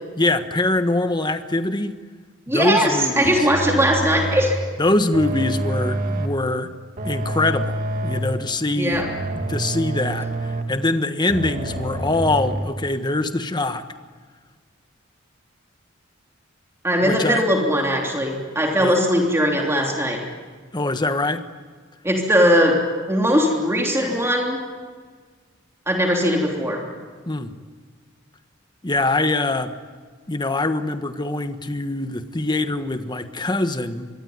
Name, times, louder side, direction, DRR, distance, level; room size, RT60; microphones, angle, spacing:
voice 1, 0.2-2.0 2.5-3.5 4.8-6.7 7.0-9.0 9.3-13.8 17.0-17.4 18.8-19.0 20.7-21.4 27.3-27.5 28.8-29.7 30.3-34.1, left 2 dB, 20° left, 9 dB, 1.4 m, -23 dB
voice 2, 2.5-4.6 8.8-9.0 16.8-20.2 22.0-22.8 23.1-24.6 25.9-26.8, equal, 15° right, 0 dB, 3.2 m, -19 dB
sound 1, 3.2-4.6 5.1-6.5 7.0-8.4 8.9-10.8 11.3-12.6, right 1 dB, 45° right, 2.7 m, -27 dB
25.5 x 22.5 x 9.6 m, 1.5 s
head